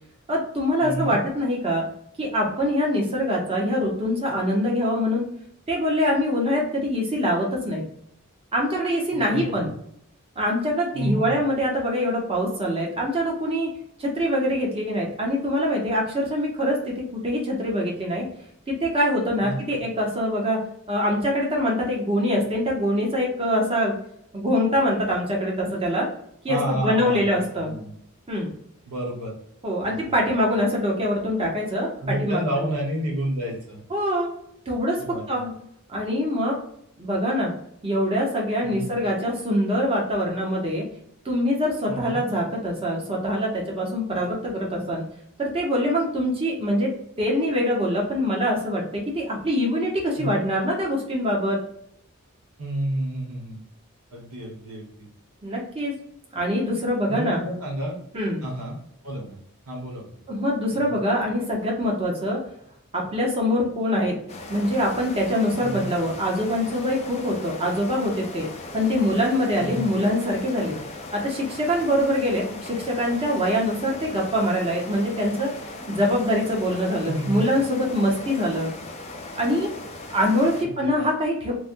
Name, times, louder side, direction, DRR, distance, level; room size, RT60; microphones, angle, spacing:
voice 1, 0.3-1.8 2.2-5.3 5.7-7.8 8.5-9.7 10.4-13.7 14.0-18.3 18.8-20.6 20.9-24.0 24.3-26.1 26.4-27.7 28.3-28.5 29.6-32.7 33.9-34.3 34.7-35.0 35.3-35.5 35.9-36.6 37.0-37.5 37.8-40.8 41.2-45.0 45.4-46.9 47.2-51.6 55.4-55.9 56.3-57.4 58.1-58.4 60.3-62.4 62.9-64.1 64.5-68.5 68.7-70.8 71.1-75.5 75.9-78.7 79.4-79.7 80.1-81.5, equal, 25° right, -2 dB, 0.9 m, -24 dB
voice 2, 0.8-1.2 9.1-9.7 10.9-11.3 19.4-19.8 26.5-27.9 28.8-29.3 29.8-30.0 30.2-30.3 32.0-33.8 35.0-35.4 38.6-38.9 41.9-42.2 50.1-50.4 52.6-53.6 54.1-55.1 57.1-58.0 58.4-58.8 59.0-59.4 59.7-60.2 60.7-60.9 65.6-65.9 69.6-69.9 77.0-77.4 80.6-80.9, right 1 dB, 85° right, -2 dB, 1.2 m, -30 dB
sound 1, 64.3-80.7, left 2 dB, 30° left, 0.4 m, -38 dB
3.3 x 2.2 x 2.5 m, 0.72 s
head